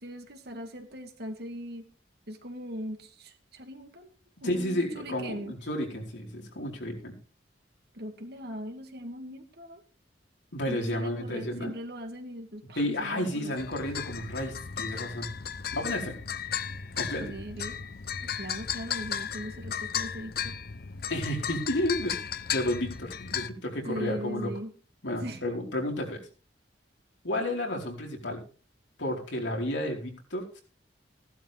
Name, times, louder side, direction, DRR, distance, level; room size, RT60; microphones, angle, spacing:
voice 1, 0.0-1.9 2.3-4.1 4.4-5.5 7.9-9.8 10.6-13.6 17.2-17.8 18.2-20.6 23.8-24.7 25.2-25.5, equal, 60° right, 5 dB, 2.3 m, -40 dB
voice 2, 4.4-7.2 10.5-11.7 12.8-15.3 15.7-16.1 16.9-17.3 21.1-24.5 25.0-26.2 27.2-28.4 29.0-30.6, left 1 dB, 80° left, 0 dB, 4.4 m, -32 dB
sound 1, 13.6-23.5, left 8 dB, 55° left, 0.8 m, -35 dB
16.0 x 12.0 x 3.5 m, 0.37 s
head